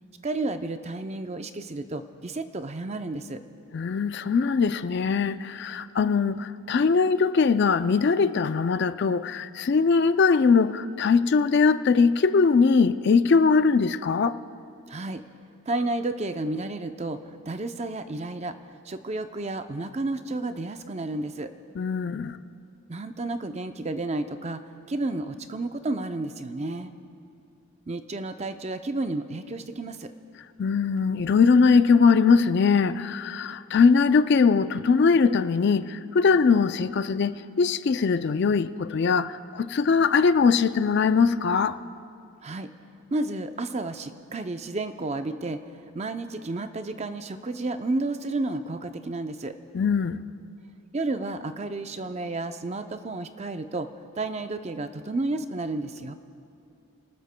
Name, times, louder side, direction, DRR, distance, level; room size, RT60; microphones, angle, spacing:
voice 1, 0.2-3.4 14.9-15.2 15.7-18.6 18.8-21.5 22.9-24.6 24.9-26.9 27.9-30.1 42.4-42.7 43.1-45.6 45.9-49.5 50.9-53.9 54.2-56.1, right 2 dB, 30° right, 0.5 m, -31 dB
voice 2, 3.7-14.4 21.8-22.4 30.6-41.8 49.7-50.2, left 5 dB, 50° left, 0.4 m, -21 dB
29.5 x 19.5 x 2.2 m
head